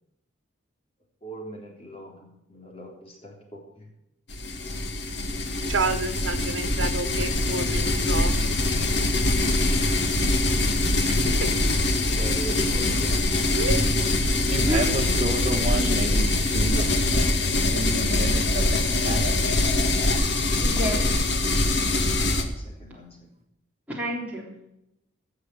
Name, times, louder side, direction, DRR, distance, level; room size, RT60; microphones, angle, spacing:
voice 1, 1.2-3.9 12.0-13.3 21.0-21.1 22.2-23.2, right 2 dB, 30° left, 0 dB, 3.7 m, -41 dB
sound 1, 4.3-22.4, left 2 dB, 60° left, 2.0 m, -23 dB
voice 2, 5.6-8.4 11.1-11.5 13.5-13.8, right 4 dB, 80° right, 10 dB, 1.5 m, -30 dB
voice 3, 14.5-16.9 17.6-19.3, right 2 dB, 30° right, 1 dB, 1.8 m, -31 dB
voice 4, 20.5-21.3 23.9-24.5, equal, 10° right, -4 dB, 3.4 m, -30 dB
17.0 x 6.6 x 8.7 m, 0.84 s
head